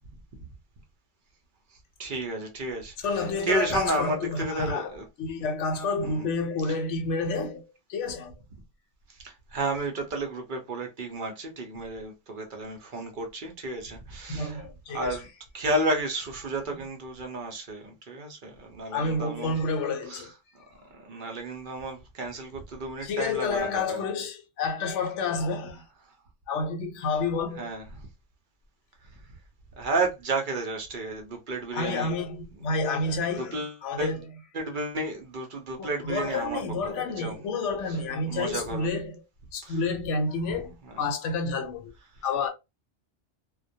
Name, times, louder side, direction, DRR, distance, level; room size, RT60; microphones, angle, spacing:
voice 1, 2.0-5.0 6.0-6.3 6.7-6.8 9.1-15.3 15.5-19.6 20.1-20.3 20.9-24.1 27.6-27.8 29.8-32.1 33.4-34.1 34.5-36.6 36.9-37.4 37.9-38.0 38.2-38.9 39.6-39.8 40.8-41.0, right 2 dB, 55° right, 0.6 m, -32 dB
voice 2, 3.0-7.6 7.9-8.4 14.3-15.2 18.9-20.3 23.0-25.8 26.5-27.7 31.7-34.3 35.8-39.2 39.5-41.9 42.2-42.5, left 3 dB, 75° left, 0.9 m, -29 dB
2.2 x 2.1 x 2.6 m
omnidirectional pair, 1.3 m